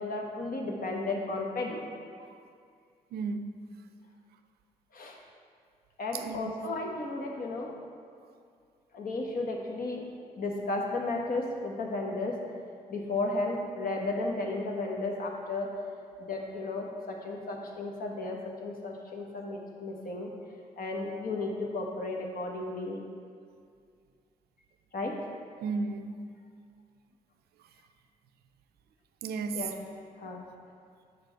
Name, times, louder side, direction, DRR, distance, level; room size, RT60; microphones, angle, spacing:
voice 1, 0.0-1.8 4.9-5.2 6.0-7.7 8.9-10.0 10.4-12.3 12.9-15.7 16.2-20.3 20.8-23.0 24.9-25.1 29.5-29.7 30.2-30.5, left 2 dB, 55° left, 0 dB, 1.2 m, -34 dB
voice 2, 3.1-3.5 6.2-6.4 16.1-16.3 25.6-26.2 29.2-29.7 30.3-30.4, right 4 dB, 70° right, 9 dB, 0.5 m, -34 dB
7.2 x 5.2 x 4.6 m, 2.2 s
hypercardioid pair, 45°, 17 cm